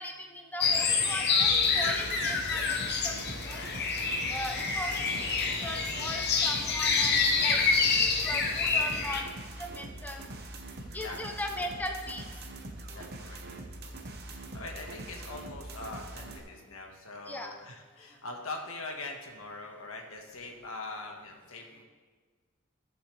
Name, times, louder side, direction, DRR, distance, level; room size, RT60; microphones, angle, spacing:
voice 1, 0.0-1.5 1.7-2.6 3.0-3.6 4.3-7.6 8.2-9.2 9.6-10.3 10.9-12.3 17.3-17.6, left 1 dB, 10° left, 3 dB, 0.7 m, -38 dB
sound 1, 0.6-9.2, left 4 dB, 50° left, 0.9 m, -27 dB
sound 2, 1.4-16.4, right 2 dB, 50° right, 1.1 m, -43 dB
voice 2, 10.9-11.4 12.9-13.9 14.3-21.8, left 2 dB, 85° left, 2 dB, 1.6 m, -43 dB
15.0 x 7.0 x 3.4 m, 1.5 s
head